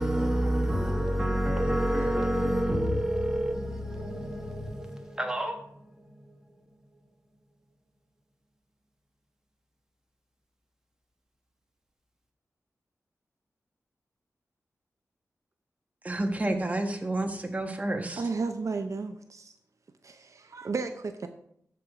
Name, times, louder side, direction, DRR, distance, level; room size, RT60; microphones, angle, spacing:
voice 1, 0.0-6.5, equal, 10° right, 1.5 m, -28 dB
voice 2, 16.0-18.2, right 1 dB, 25° right, 1.3 m, -30 dB
voice 3, 18.2-19.5 20.0-21.3, right 4 dB, 65° right, 0.7 m, -33 dB
13.0 x 4.7 x 4.9 m
wide cardioid pair, 105°, 6 cm